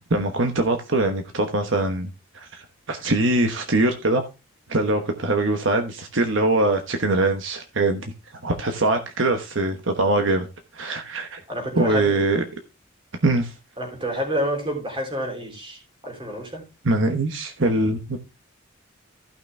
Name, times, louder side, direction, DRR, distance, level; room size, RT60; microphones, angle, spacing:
voice 1, 0.1-2.1 2.3-4.2 4.7-8.1 8.4-10.5 10.7-11.4 11.7-12.4 13.2-13.5 16.8-18.2, right 2 dB, 65° right, 1.1 m, -22 dB
voice 2, 11.5-12.2 13.8-16.7, equal, 25° right, 3.5 m, -29 dB
14.5 x 6.0 x 3.4 m
head